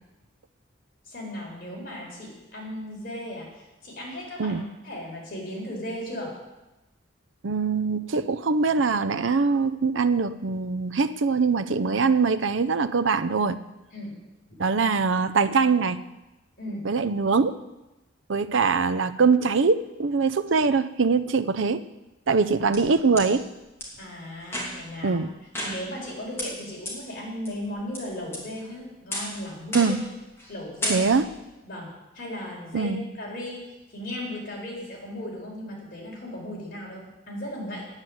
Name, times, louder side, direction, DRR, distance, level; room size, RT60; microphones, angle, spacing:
voice 1, 1.0-6.3 13.9-14.2 16.6-16.9 24.0-25.2 25.6-30.0 30.5-31.1 31.6-37.9, left 1 dB, 50° left, -3 dB, 4.6 m, -36 dB
voice 2, 7.4-13.6 14.6-16.0 16.8-17.6 18.3-21.8 22.3-23.5 25.0-25.3 29.7-30.0 30.9-31.3 32.7-33.0, right 4 dB, 75° right, 13 dB, 0.6 m, -23 dB
sound 1, 22.3-23.3 23.8-23.9 24.4-25.0 25.5-26.1 26.4-26.5 26.9-27.0 27.4-28.0 28.3-28.7 29.1-29.4 29.7-30.1 30.4-30.5 30.8-31.4, left 1 dB, 15° left, 2.9 m, -32 dB
9.8 x 9.0 x 7.7 m, 1.0 s
head